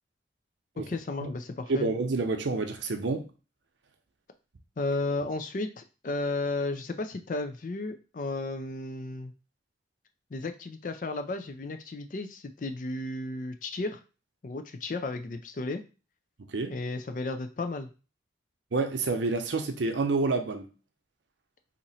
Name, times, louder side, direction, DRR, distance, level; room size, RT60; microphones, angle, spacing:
voice 1, 0.9-1.9 4.8-9.3 10.3-14.0 14.4-15.8 16.7-17.9, left 2 dB, 45° left, 8 dB, 0.4 m, -33 dB
voice 2, 1.7-3.3 16.5-16.7 18.7-20.7, right 3 dB, 90° right, 6 dB, 0.6 m, -28 dB
2.9 x 2.5 x 4.1 m, 0.33 s
head